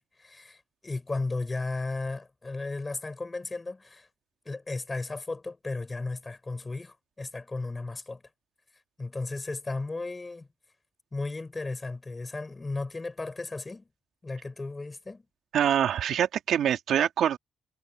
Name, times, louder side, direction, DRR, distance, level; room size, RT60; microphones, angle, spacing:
voice 1, 0.0-4.1 4.5-8.2 9.0-10.5 11.1-13.9 14.2-15.3, left 3 dB, 20° left, 7.1 m, -35 dB
voice 2, 15.5-17.4, right 10 dB, 70° right, 2.5 m, -25 dB
cardioid pair, 90°, 0 cm